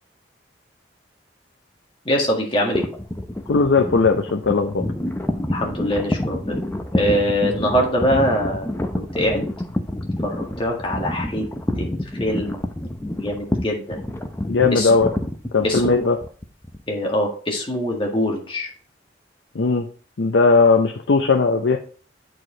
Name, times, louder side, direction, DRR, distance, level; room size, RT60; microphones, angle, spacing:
voice 1, 2.1-2.9 5.5-6.6 6.9-8.7 8.9-9.5 10.2-11.5 11.8-11.9 12.2-12.6 13.2-14.0 14.7-14.9 15.6-16.0 16.9-18.7, equal, 30° left, -1 dB, 1.8 m, -23 dB
sound 1, 2.7-16.8, left 1 dB, 15° left, 0.6 m, -28 dB
voice 2, 3.5-4.9 14.5-15.1 15.5-16.2 19.5-19.9 20.2-21.8, left 4 dB, 75° left, 3 dB, 0.6 m, -18 dB
8.1 x 4.7 x 3.8 m, 0.42 s
head